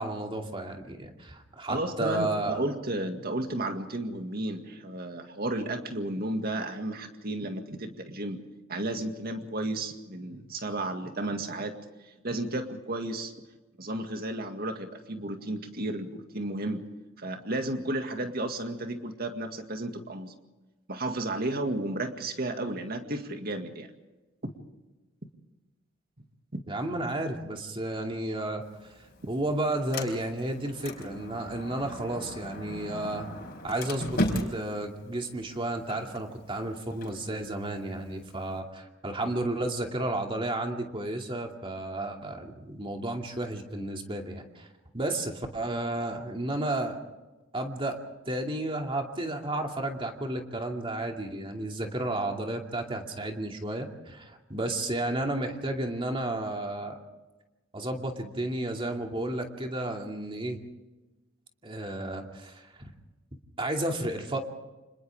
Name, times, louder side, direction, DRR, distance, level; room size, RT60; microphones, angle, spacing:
voice 1, 0.0-2.6 26.7-28.6 29.3-33.3 33.6-34.2 34.5-44.7 44.9-47.0 47.5-48.0 48.3-57.0 57.7-60.6 61.6-62.9 63.6-64.4, right 1 dB, 25° right, 2 dB, 2.5 m, -32 dB
voice 2, 1.7-8.4 8.7-11.8 12.2-13.3 13.8-16.8 17.2-20.3 20.9-23.9 26.5-26.6, right 1 dB, 50° right, 5 dB, 2.1 m, -33 dB
Sliding door, 28.6-38.6, left 1 dB, 45° left, 4.7 m, -38 dB
29.5 x 26.5 x 3.6 m, 1.1 s
head